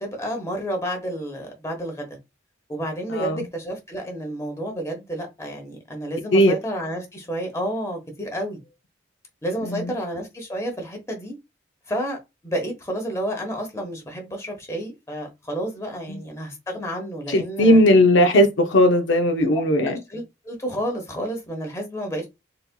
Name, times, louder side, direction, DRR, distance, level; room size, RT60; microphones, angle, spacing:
voice 1, 0.0-2.2 2.7-8.6 9.4-11.4 11.9-12.2 12.4-17.8 19.4-19.5 19.8-22.3, right 1 dB, 15° left, 1.1 m, -30 dB
voice 2, 3.1-3.4 6.3-6.5 9.6-9.9 16.1-16.2 17.3-20.0, left 1 dB, 75° left, 0.6 m, -17 dB
4.1 x 2.7 x 2.2 m
head